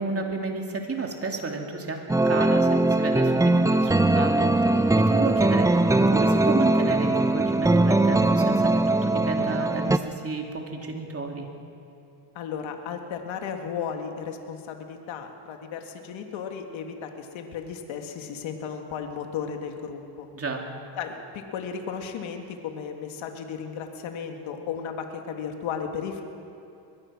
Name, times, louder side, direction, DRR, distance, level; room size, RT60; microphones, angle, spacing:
voice 1, 0.0-11.5 20.3-20.7, right 3 dB, 30° right, 1 dB, 3.2 m, -32 dB
sound 1, 2.1-10.0, right 2 dB, 5° right, 0.6 m, -21 dB
voice 2, 12.4-20.3 21.0-26.2, left 7 dB, 85° left, 4 dB, 2.1 m, -35 dB
22.5 x 20.5 x 6.1 m, 2.6 s
cardioid pair, 105°, 46 cm